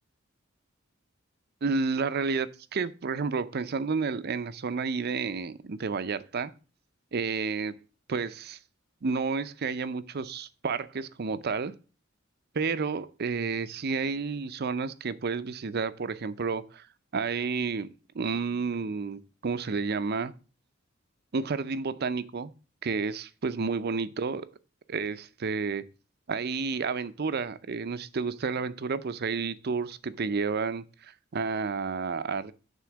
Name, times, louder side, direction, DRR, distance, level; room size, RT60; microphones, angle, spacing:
voice 1, 1.6-6.5 7.1-7.7 8.1-8.6 9.0-11.7 12.5-16.9 17.1-17.9 18.1-20.3 21.3-22.5 22.8-24.5 24.9-25.8 26.3-32.5, right 4 dB, 55° right, 0.5 m, -31 dB
9.2 x 3.8 x 6.1 m
head